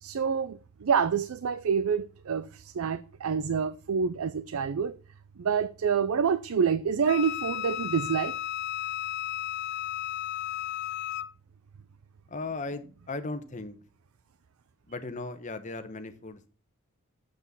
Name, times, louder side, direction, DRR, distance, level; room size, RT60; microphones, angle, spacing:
voice 1, 0.0-5.0 5.4-8.4, right 6 dB, 85° right, 0.5 m, -27 dB
Wind instrument woodwind instrument, 7.1-11.3, left 12 dB, 55° left, 0.4 m, -34 dB
voice 2, 12.3-13.8 14.9-16.5, left 3 dB, 35° left, 1.0 m, -37 dB
7.8 x 6.1 x 6.9 m
head